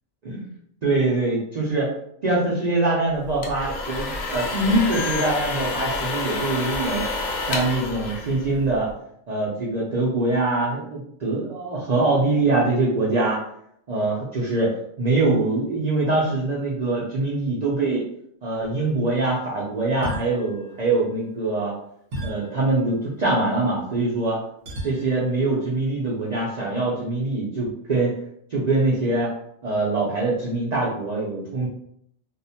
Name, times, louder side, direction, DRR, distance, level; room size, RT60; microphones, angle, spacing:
voice 1, 0.8-1.9 2.2-7.1 7.5-8.9 9.3-13.4 13.9-18.1 18.4-21.7 22.2-24.4 24.8-28.2 28.5-29.3 29.6-31.7, right 2 dB, 65° right, -5 dB, 0.4 m, -23 dB
sound 1, 3.2-8.9, left 3 dB, 65° left, 0.7 m, -29 dB
sound 2, 20.0-21.3 22.1-23.3 24.7-25.5, right 1 dB, 50° right, 1.0 m, -36 dB
2.5 x 2.0 x 2.7 m, 0.71 s
omnidirectional pair, 1.4 m